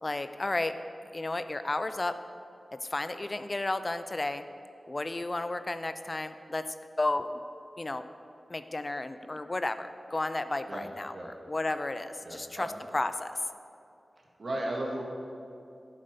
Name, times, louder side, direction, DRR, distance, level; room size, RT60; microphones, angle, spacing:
voice 1, 0.0-0.7 1.1-2.1 2.7-4.4 4.9-6.6 7.0-7.4 7.8-8.1 8.5-12.7 12.9-13.4, left 2 dB, 35° left, 11 dB, 0.4 m, -32 dB
voice 2, 12.2-12.7 14.4-15.0, right 1 dB, 65° right, -1 dB, 1.9 m, -35 dB
11.5 x 8.2 x 5.2 m, 2.6 s
wide cardioid pair, 95°, 0 cm